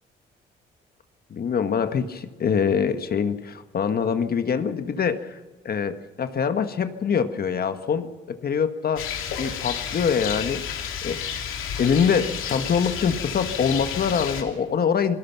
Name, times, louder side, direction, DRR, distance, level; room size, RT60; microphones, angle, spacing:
voice 1, 1.3-5.4 5.6-9.1 9.4-10.6 11.0-11.2 11.8-15.2, left 6 dB, 50° left, 9 dB, 1.5 m, -24 dB
Rain, 9.0-14.4, left 8 dB, 85° left, 2.9 m, -31 dB
26.5 x 18.0 x 5.9 m, 1.2 s
cardioid pair, 90°, 20 cm